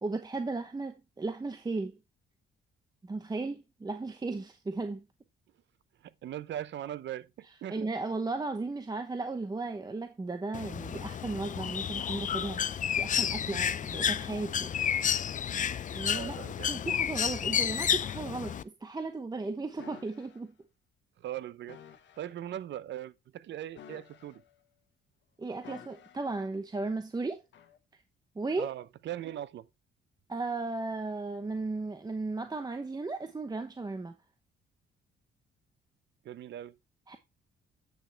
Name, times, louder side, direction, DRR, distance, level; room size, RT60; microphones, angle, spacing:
voice 1, 0.0-2.0 3.0-5.1 7.7-12.6 13.0-14.7 15.5-15.7 15.9-16.4 16.7-20.5 25.4-27.4 28.4-28.7 30.3-34.1 37.1-37.2, right 3 dB, 20° right, 0.9 m, -35 dB
voice 2, 6.0-7.9 16.0-16.7 21.2-21.8 22.2-24.4 28.6-29.7 36.2-36.8, right 12 dB, 65° right, 0.7 m, -40 dB
Bird, 10.5-18.6, left 8 dB, 40° left, 0.5 m, -31 dB
sound 1, 19.8-20.4 21.7-22.3 23.7-24.6 25.6-26.4 27.5-27.8, left 8 dB, 65° left, 1.4 m, -52 dB
9.0 x 6.2 x 3.2 m
cardioid pair, 90°, 20 cm